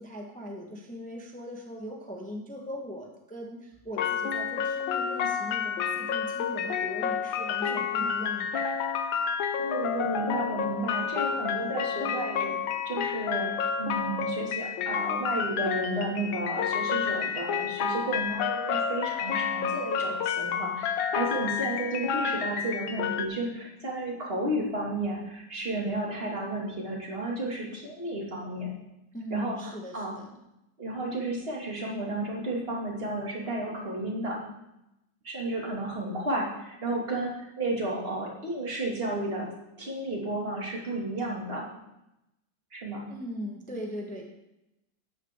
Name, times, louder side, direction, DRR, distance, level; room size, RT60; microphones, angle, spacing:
voice 1, 0.0-8.7 29.1-30.3 43.1-44.3, equal, 5° left, 1 dB, 1.1 m, -40 dB
sound 1, 4.0-23.3, left 7 dB, 85° left, 1.6 m, -30 dB
voice 2, 7.6-8.1 9.6-12.5 12.9-13.5 13.8-28.7 29.3-30.1 30.8-34.4 35.2-39.5 39.8-41.7 42.7-43.0, right 1 dB, 30° right, -2 dB, 2.6 m, -32 dB
12.5 x 9.3 x 3.7 m, 0.88 s
omnidirectional pair, 2.1 m